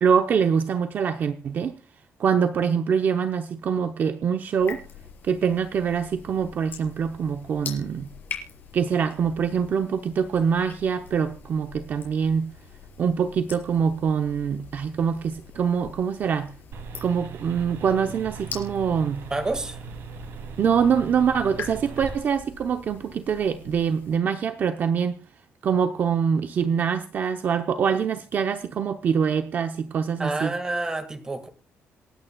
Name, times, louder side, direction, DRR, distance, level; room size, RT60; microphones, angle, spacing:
voice 1, 0.0-1.8 2.2-4.8 5.2-8.1 8.7-12.5 13.0-16.5 17.0-19.3 20.6-25.2 25.6-30.5, right 7 dB, 45° right, 0.8 m, -24 dB
sound 1, 4.6-24.2, left 7 dB, 45° left, 5.0 m, -44 dB
sound 2, 16.7-22.2, right 5 dB, 75° right, 2.7 m, -39 dB
voice 2, 19.3-19.8 30.2-31.5, right 2 dB, 15° right, 1.7 m, -28 dB
27.0 x 9.4 x 2.3 m
cardioid pair, 175°, 5 cm